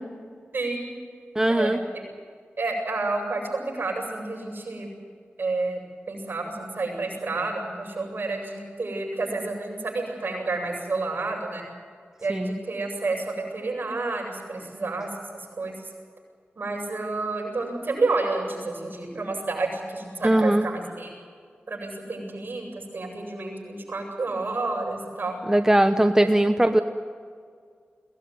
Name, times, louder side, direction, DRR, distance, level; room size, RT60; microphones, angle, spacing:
voice 1, 0.5-0.9 1.5-1.7 2.6-4.9 5.4-5.8 6.1-11.6 12.2-15.1 15.6-15.7 16.6-21.1 21.7-25.4 26.2-26.3, right 3 dB, 55° right, 0 dB, 7.9 m, -30 dB
voice 2, 1.3-1.8 12.3-12.6 20.2-20.7 25.5-26.8, right 1 dB, 15° right, 7 dB, 1.0 m, -20 dB
22.0 x 18.5 x 9.6 m, 2.1 s
wide cardioid pair, 60°, 4 cm